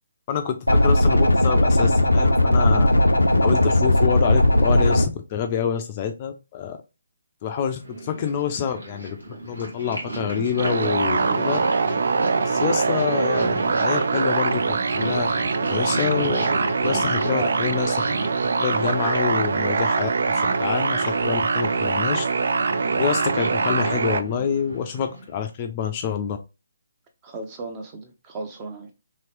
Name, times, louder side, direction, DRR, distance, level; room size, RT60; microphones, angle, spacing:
voice 1, 0.3-2.9 3.4-6.8 7.4-11.6 12.4-15.3 15.7-16.4 16.8-18.0 18.6-22.3 23.0-26.4, left 8 dB, 30° left, 0.4 m, -27 dB
sound 1, 0.7-5.1, left 1 dB, 85° left, 0.5 m, -17 dB
Purr, 7.7-25.4, right 2 dB, 85° right, 1.9 m, -35 dB
sound 2, 10.6-24.2, right 4 dB, 60° right, 0.3 m, -23 dB
voice 2, 27.2-28.9, right 2 dB, 25° right, 0.7 m, -34 dB
3.1 x 2.9 x 3.0 m
figure-of-eight pair, 140°, 0 cm